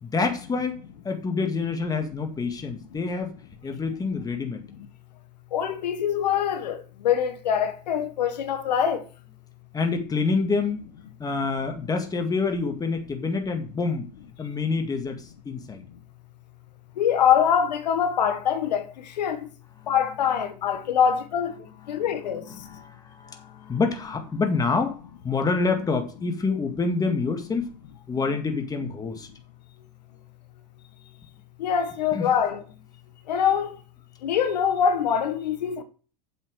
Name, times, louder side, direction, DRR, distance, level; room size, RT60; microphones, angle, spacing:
voice 1, 0.0-3.4 3.6-4.6 9.7-10.8 11.2-14.1 14.4-15.8 19.8-19.9 21.9-22.0 22.5-25.0 25.2-27.7 28.1-29.3 32.1-32.3, left 4 dB, 15° left, 1.9 m, -27 dB
voice 2, 5.5-9.0 17.0-19.5 19.9-21.5 21.9-22.4 31.6-32.6 33.3-33.7 34.2-35.8, left 8 dB, 80° left, 1.4 m, -24 dB
7.9 x 7.7 x 4.8 m
hypercardioid pair, 105°, 21 cm